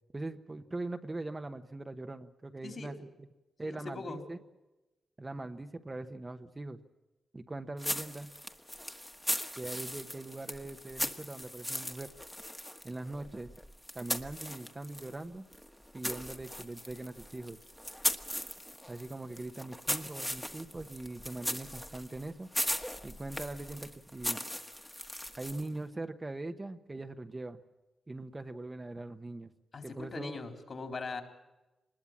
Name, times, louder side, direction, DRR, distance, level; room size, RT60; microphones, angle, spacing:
voice 1, 0.1-3.3 3.6-4.4 5.2-6.8 7.3-8.3 9.6-12.1 12.8-13.5 13.9-15.4 15.9-17.6 18.9-22.5 23.0-24.4 25.4-27.6 28.1-29.5 29.8-30.4, right 2 dB, 20° right, 7 dB, 1.1 m, -41 dB
voice 2, 2.6-3.0 3.6-4.2 29.7-31.2, left 3 dB, 50° left, 5 dB, 3.9 m, -41 dB
sound 1, 7.8-15.2 15.5-25.8, equal, 5° left, 1.5 m, -38 dB
24.5 x 20.5 x 7.4 m, 1.0 s
wide cardioid pair, 110°, 0 cm